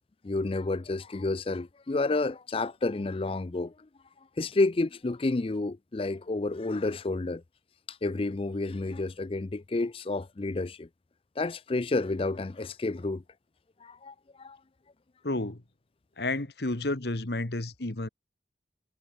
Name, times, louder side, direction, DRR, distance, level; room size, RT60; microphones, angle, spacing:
voice 1, 0.2-3.7 4.4-7.4 7.9-10.9 11.4-13.2 13.8-14.6, left 2 dB, 30° left, 0.5 m, -30 dB
voice 2, 15.2-15.6 16.2-18.1, left 2 dB, 60° left, 1.6 m, -31 dB
head